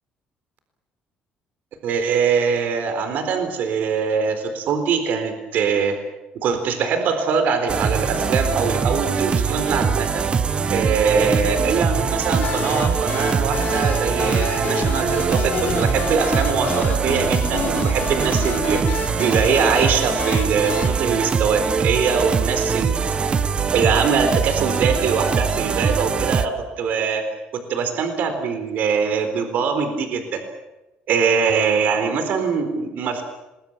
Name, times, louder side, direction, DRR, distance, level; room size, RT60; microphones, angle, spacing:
voice 1, 1.8-6.0 6.4-10.1 10.7-18.8 19.2-23.2 23.7-27.2 27.5-30.4 31.1-33.2, right 6 dB, 65° right, 8 dB, 4.0 m, -22 dB
sound 1, 7.7-26.5, right 6 dB, 35° right, 1.3 m, -22 dB
sound 2, 12.4-22.0, left 7 dB, 55° left, 4.0 m, -31 dB
27.5 x 21.5 x 7.3 m, 1.0 s
cardioid pair, 130°, 3 cm